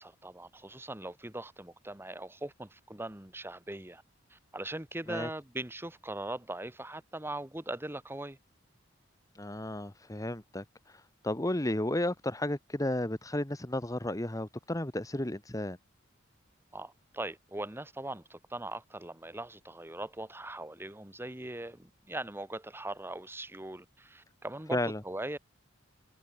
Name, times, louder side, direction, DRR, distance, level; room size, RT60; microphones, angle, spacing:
voice 1, 0.0-4.0 4.3-8.4 16.7-25.4, right 1 dB, 10° right, 1.3 m, -40 dB
voice 2, 9.4-10.6 11.2-15.8 24.7-25.0, left 1 dB, 15° left, 1.4 m, -33 dB
head